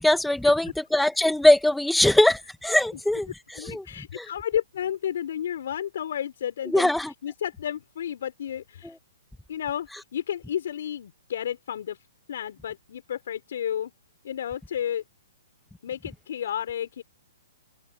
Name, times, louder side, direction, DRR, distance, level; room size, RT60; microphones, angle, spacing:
voice 1, 0.0-3.3 3.7-3.8 4.1-4.2 6.7-7.1, left 1 dB, ahead, 1.7 m, -21 dB
voice 2, 3.5-8.9 9.5-12.0 12.3-13.9 14.2-15.0 15.8-17.0, left 9 dB, 65° left, 4.7 m, -32 dB
open air
hypercardioid pair, 130°, 0 cm